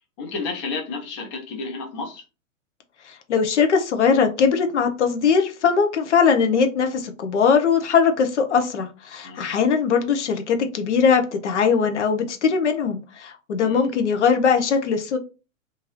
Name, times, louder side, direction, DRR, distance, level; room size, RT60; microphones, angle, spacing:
voice 1, 0.2-2.2 9.2-9.6 13.6-13.8, left 4 dB, 20° left, 0.5 m, -31 dB
voice 2, 3.1-15.2, left 6 dB, 60° left, 0.7 m, -20 dB
2.6 x 2.5 x 3.0 m
figure-of-eight pair, 110°, 41 cm